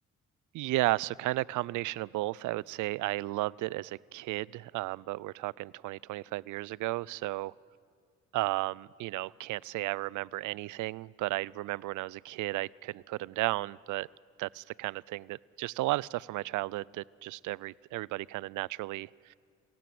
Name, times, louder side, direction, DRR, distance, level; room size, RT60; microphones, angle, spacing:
voice 1, 0.5-7.5 8.3-14.1 14.4-19.3, right 18 dB, 80° right, 25 dB, 0.4 m, -34 dB
26.0 x 16.5 x 7.7 m, 2.2 s
cardioid pair, 90°, 30 cm